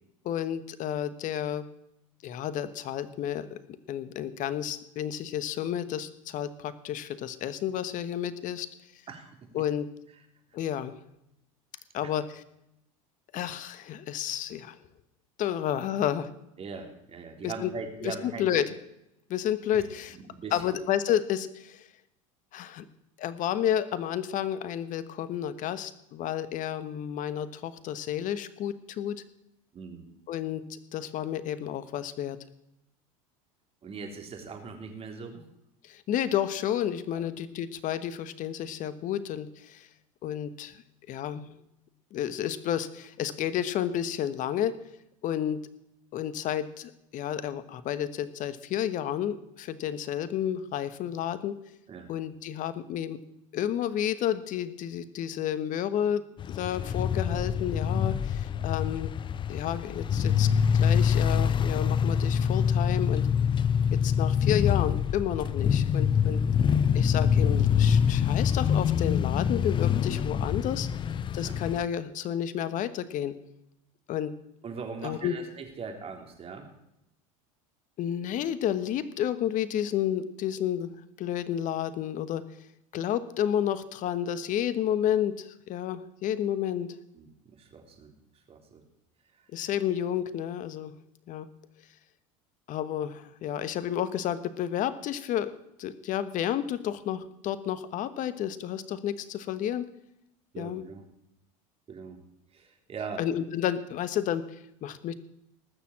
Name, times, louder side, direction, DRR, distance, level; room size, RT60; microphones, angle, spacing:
voice 1, 0.2-1.7 2.2-3.6 3.9-8.7 9.5-9.9 10.5-11.0 11.9-12.4 13.3-14.8 15.4-16.3 17.4-17.7 18.0-18.7 19.3-20.2 20.5-21.9 22.5-22.8 23.2-29.2 30.3-32.4 35.8-39.9 40.2-40.8 41.1-41.5 42.1-44.8 45.2-45.6 46.1-51.5 52.1-53.2 53.5-56.2 56.5-59.1 59.5-60.5 60.7-63.3 63.9-66.4 66.9-70.9 71.3-73.3 74.1-74.3 75.0-75.3 78.0-82.4 82.9-86.9 89.5-90.9 91.3-91.5 92.7-95.5 95.8-99.9 100.6-100.8 103.2-105.1, left 10 dB, 45° left, 14 dB, 1.2 m, -31 dB
voice 2, 9.1-9.5 12.0-12.1 16.6-18.6 20.1-20.7 29.7-30.1 33.8-35.4 37.1-37.2 51.9-52.1 71.4-71.5 74.6-76.7 87.1-88.1 88.5-88.8 89.3-89.4 100.5-101.0 101.9-102.2 102.5-103.2, right 5 dB, 35° right, 3 dB, 3.6 m, -40 dB
sound 1, 56.4-71.8, left 7 dB, 30° left, 0.5 m, -25 dB
19.5 x 7.0 x 7.5 m, 0.82 s
hypercardioid pair, 95°, 18 cm